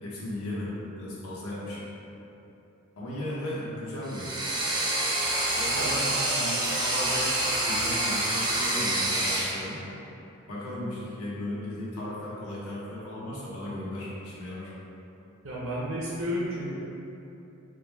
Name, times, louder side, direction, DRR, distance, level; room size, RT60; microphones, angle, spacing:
voice 1, 0.0-1.8 3.0-4.3 5.6-7.3 7.6-9.8 10.5-14.7, left 1 dB, 80° left, -7 dB, 1.1 m, -36 dB
sound 1, 4.1-9.6, right 1 dB, 20° right, 0.4 m, -27 dB
voice 2, 15.4-16.7, equal, 65° right, -7 dB, 0.6 m, -32 dB
4.9 x 2.2 x 3.3 m, 3.0 s
head